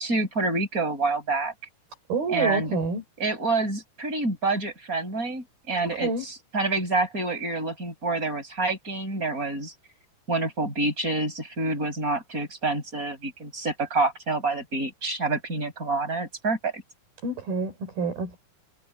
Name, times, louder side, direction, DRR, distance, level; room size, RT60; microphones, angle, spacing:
voice 1, 0.0-1.5 2.3-2.8 3.2-6.1 6.5-9.7 10.3-16.8, right 3 dB, 20° right, 8.3 m, -27 dB
voice 2, 2.1-3.0 5.9-6.2 17.2-18.4, right 4 dB, 70° right, 6.4 m, -28 dB
omnidirectional pair, 4.5 m